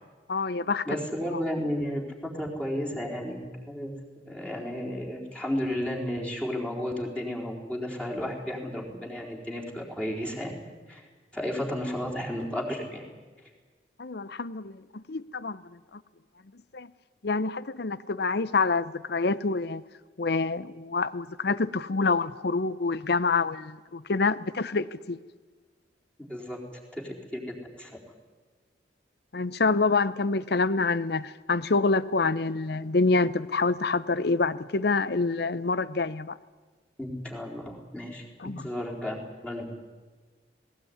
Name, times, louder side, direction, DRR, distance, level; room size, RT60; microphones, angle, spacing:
voice 1, 0.3-1.0 14.0-16.0 16.7-16.9 17.2-19.8 20.2-25.2 29.3-36.4 38.4-38.7, left 3 dB, 60° left, 17 dB, 0.7 m, -27 dB
voice 2, 0.9-3.9 4.3-10.5 10.9-11.0 11.3-13.0 26.3-27.9 37.0-39.7, equal, 5° left, -3 dB, 4.2 m, -33 dB
19.0 x 18.5 x 9.5 m, 1.4 s
head